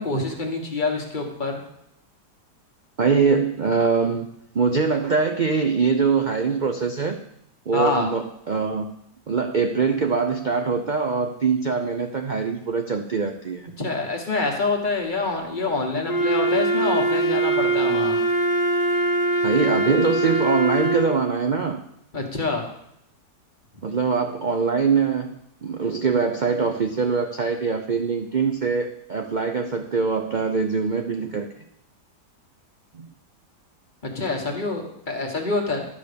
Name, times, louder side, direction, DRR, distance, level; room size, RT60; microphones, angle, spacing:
voice 1, 0.0-1.6 7.7-8.1 13.8-18.2 22.1-22.6 34.0-35.8, left 3 dB, 30° left, 1 dB, 1.5 m, -26 dB
voice 2, 3.0-4.3 4.5-7.2 7.7-8.9 9.3-13.7 19.4-21.8 23.8-31.5 32.9-33.1, right 5 dB, 70° right, 5 dB, 0.4 m, -23 dB
Wind instrument woodwind instrument, 16.1-21.2, right 2 dB, 45° left, 0.5 m, -22 dB
11.5 x 5.1 x 6.8 m, 0.76 s
omnidirectional pair, 1.8 m